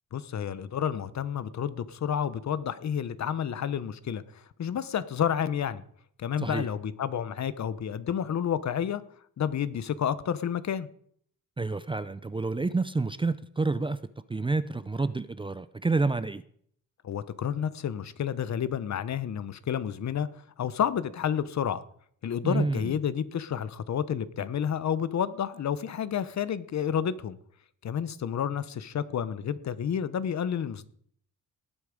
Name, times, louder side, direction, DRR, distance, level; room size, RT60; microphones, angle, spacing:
voice 1, 0.1-5.8 6.2-9.0 9.4-10.9 17.0-20.3 20.6-21.8 22.2-27.4 27.8-30.9, left 8 dB, 55° left, 0.9 m, -30 dB
voice 2, 11.6-14.0 14.3-16.4 22.4-22.9, right 3 dB, 15° right, 0.5 m, -28 dB
18.5 x 8.3 x 5.2 m
cardioid pair, 120°, 33 cm